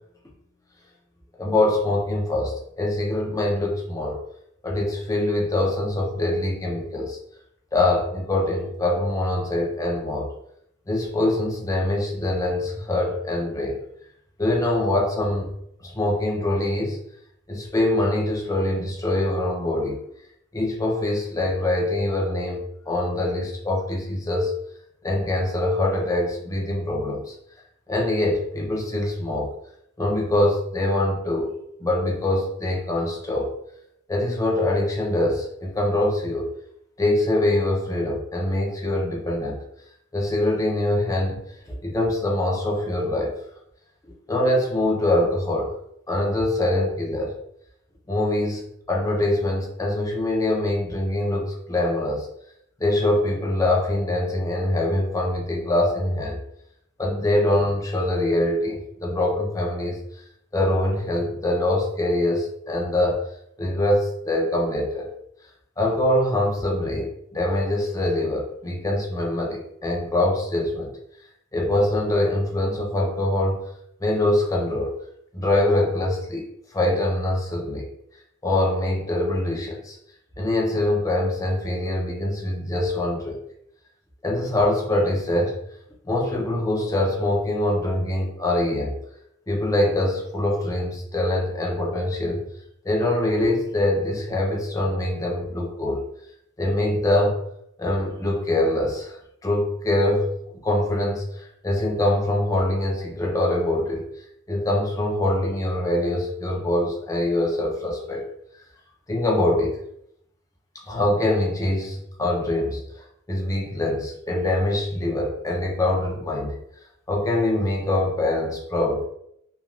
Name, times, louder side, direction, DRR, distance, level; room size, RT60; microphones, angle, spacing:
voice 1, 1.4-4.2 4.6-7.2 7.7-10.3 10.9-13.8 14.4-15.5 15.8-17.0 17.5-20.0 20.5-24.5 25.0-27.3 27.9-29.5 30.0-31.5 31.8-33.5 34.1-36.5 37.0-39.6 40.1-41.4 41.7-43.3 44.3-45.7 46.1-47.3 48.1-52.3 52.8-56.4 57.0-60.0 60.5-63.2 63.6-65.1 65.8-70.9 71.5-73.7 74.0-74.9 75.3-76.4 76.7-77.9 78.4-80.0 80.4-83.4 84.2-85.6 86.1-88.9 89.5-92.4 92.8-96.0 96.6-97.4 97.8-100.3 100.6-108.2 109.1-109.8 110.8-116.5 117.1-119.0, left 1 dB, 15° left, -2 dB, 0.5 m, -24 dB
3.1 x 2.3 x 2.4 m, 0.75 s
head